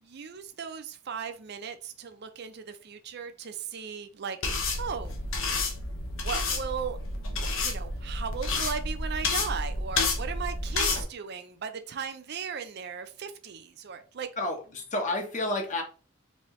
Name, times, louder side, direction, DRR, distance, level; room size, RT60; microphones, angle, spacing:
voice 1, 0.0-5.1 5.8-14.3, right 6 dB, 50° right, 0.5 m, -37 dB
sound 1, 4.4-11.0, left 3 dB, 70° left, 0.8 m, -30 dB
voice 2, 14.4-15.8, left 2 dB, 35° left, 0.9 m, -30 dB
4.1 x 2.8 x 3.1 m
head